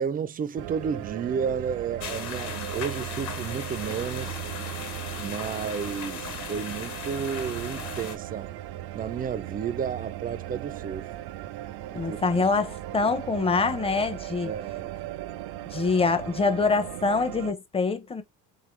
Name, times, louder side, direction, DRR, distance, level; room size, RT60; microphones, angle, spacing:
voice 1, 0.0-4.4 5.2-8.5 8.9-11.1 11.9-12.4 14.4-15.0, right 7 dB, 25° right, 0.4 m, -32 dB
sound 1, 0.6-17.5, right 14 dB, 75° right, 0.6 m, -37 dB
sound 2, 2.0-8.2, left 6 dB, 45° left, 1.3 m, -37 dB
voice 2, 11.9-14.5 15.7-18.2, left 4 dB, 15° left, 0.7 m, -25 dB
3.7 x 3.6 x 3.1 m
cardioid pair, 125°, 38 cm